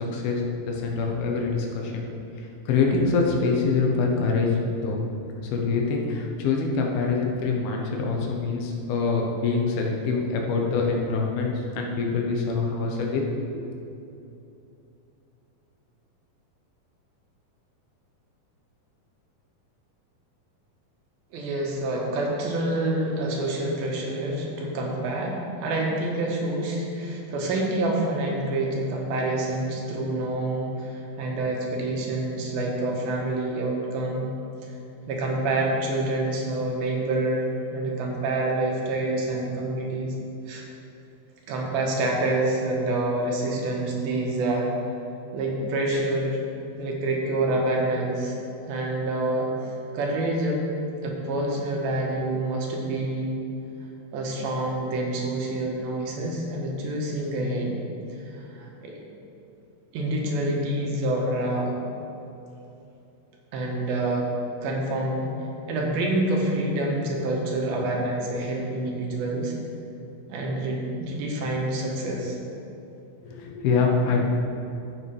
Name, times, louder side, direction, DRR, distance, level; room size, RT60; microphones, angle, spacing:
voice 1, 0.0-2.0 2.4-4.5 4.8-5.0 5.4-13.2 13.5-13.7 73.2-74.2, left 4 dB, 80° left, 0 dB, 2.9 m, -25 dB
voice 2, 21.3-34.3 34.6-34.7 35.1-40.1 40.5-40.6 41.5-44.7 45.3-46.4 46.8-48.4 48.7-50.6 51.0-53.4 54.1-57.8 58.3-59.0 59.9-61.8 63.5-64.3 64.6-65.3 65.7-69.6 70.3-72.3, right 2 dB, 75° right, -1 dB, 3.0 m, -27 dB
14.0 x 6.7 x 3.4 m, 2.8 s
omnidirectional pair, 4.4 m